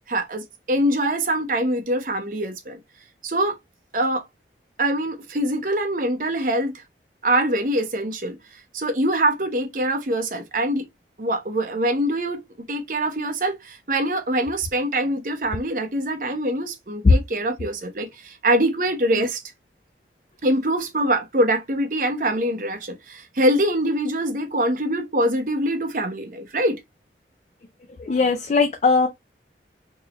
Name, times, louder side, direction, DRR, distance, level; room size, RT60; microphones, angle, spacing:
voice 1, 0.1-2.8 3.2-3.6 3.9-4.2 4.8-6.8 7.2-8.4 8.7-10.8 11.2-12.4 12.7-19.4 20.4-26.8, right 1 dB, 50° right, 0.9 m, -24 dB
voice 2, 28.0-29.1, left 4 dB, 40° left, 0.4 m, -18 dB
3.7 x 3.0 x 2.9 m
head